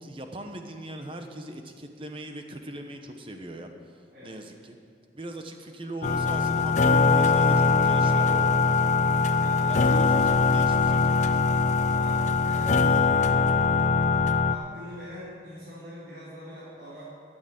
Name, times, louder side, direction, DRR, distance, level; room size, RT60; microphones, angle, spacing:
voice 1, 0.0-3.7 4.2-4.8 5.1-8.6 9.7-11.2, right 1 dB, 30° right, 5 dB, 1.0 m, -40 dB
voice 2, 4.1-4.5 9.3-10.0 11.8-13.4 14.4-17.0, equal, 60° right, -10 dB, 4.2 m, -44 dB
sound 1, 6.0-14.5, left 4 dB, 40° left, 0.5 m, -22 dB
13.0 x 9.2 x 7.6 m, 2.3 s
head